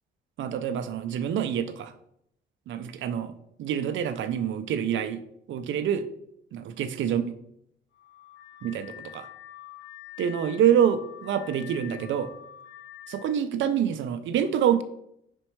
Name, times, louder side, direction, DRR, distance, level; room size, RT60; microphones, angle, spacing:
voice 1, 0.4-1.9 2.7-3.3 3.6-5.2 5.5-6.1 6.5-7.3 8.6-9.3 10.2-12.3 13.1-14.8, right 9 dB, 75° right, 10 dB, 0.6 m, -26 dB
Car / Alarm, 7.9-13.4, left 12 dB, 85° left, 0.7 m, -46 dB
5.3 x 4.4 x 4.5 m, 0.74 s
cardioid pair, 90°, 20 cm